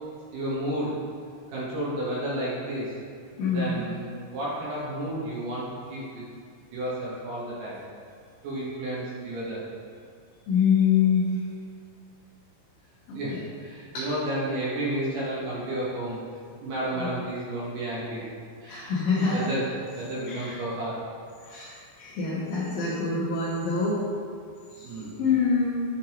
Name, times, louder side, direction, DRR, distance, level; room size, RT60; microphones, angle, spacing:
voice 1, 0.3-0.9 1.5-2.9 3.5-5.7 5.9-6.2 6.7-7.8 8.4-9.6 13.1-16.2 16.6-18.2 18.6-19.0 19.3-19.7 19.9-21.0 24.8-25.2, right 1 dB, 70° right, -8 dB, 2.1 m, -31 dB
voice 2, 3.4-3.8 10.5-11.3 13.1-13.2 13.9-14.1 17.0-17.1 18.7-19.4 20.3-20.6 21.5-24.0 24.8-25.8, left 5 dB, 80° left, -8 dB, 2.0 m, -25 dB
10.5 x 3.8 x 2.9 m, 2.2 s
omnidirectional pair, 5.3 m